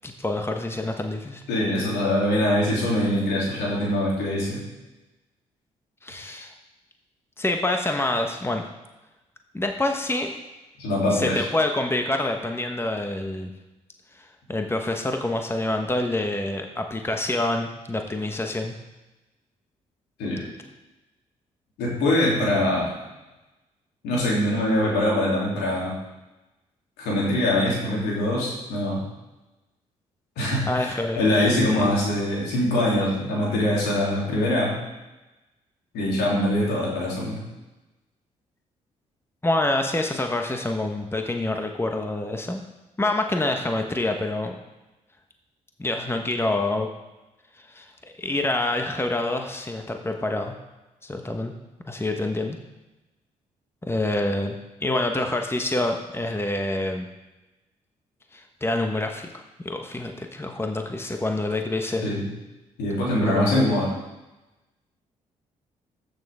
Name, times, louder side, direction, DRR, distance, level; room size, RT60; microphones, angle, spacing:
voice 1, 0.0-1.4 6.0-6.5 7.4-8.6 9.5-10.3 11.1-13.5 14.5-18.7 30.7-31.9 39.4-42.6 43.0-44.5 45.8-46.9 47.6-50.5 51.0-51.5 51.9-52.6 53.8-57.1 58.3-59.3 59.6-62.1 63.3-63.8, left 2 dB, 15° left, 4 dB, 1.2 m, -27 dB
voice 2, 1.5-4.6 10.8-11.4 20.2-20.4 21.8-22.9 24.0-25.9 27.0-29.0 30.4-34.8 35.9-37.4 62.0-62.3 62.8-63.9, left 1 dB, 75° left, -4 dB, 3.1 m, -23 dB
14.0 x 6.7 x 3.6 m, 1.1 s
hypercardioid pair, 45°, 17 cm